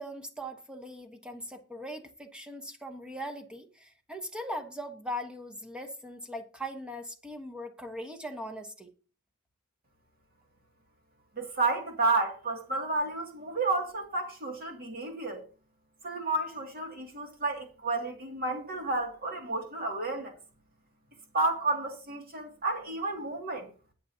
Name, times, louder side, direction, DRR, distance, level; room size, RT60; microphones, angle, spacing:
voice 1, 0.0-8.9, equal, 5° right, 1.1 m, -40 dB
voice 2, 11.4-15.4 16.0-20.4 21.3-23.7, right 3 dB, 45° right, 2.3 m, -31 dB
21.0 x 7.0 x 2.8 m
head